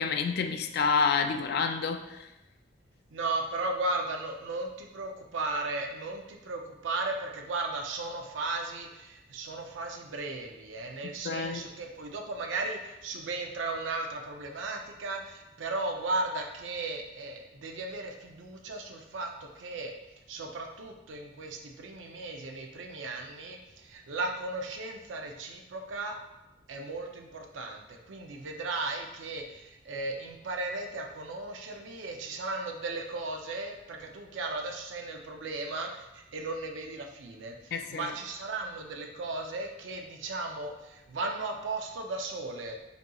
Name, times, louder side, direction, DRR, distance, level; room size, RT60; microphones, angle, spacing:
voice 1, 0.0-2.3 11.0-11.6 37.7-38.1, left 5 dB, 55° left, 7 dB, 0.3 m, -29 dB
voice 2, 3.1-19.9 20.3-26.2 26.7-42.8, right 2 dB, 80° right, 2 dB, 0.5 m, -36 dB
5.2 x 2.8 x 2.3 m, 0.94 s
head